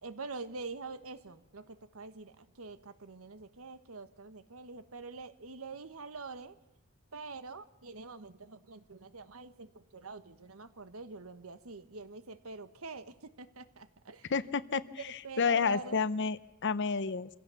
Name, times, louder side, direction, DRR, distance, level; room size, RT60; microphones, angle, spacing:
voice 1, 0.0-6.5 7.1-14.3 15.2-16.0, right 4 dB, 80° right, 12 dB, 1.3 m, -45 dB
voice 2, 14.3-17.3, left 5 dB, 55° left, 16 dB, 0.8 m, -31 dB
25.5 x 16.5 x 7.1 m, 1.0 s
head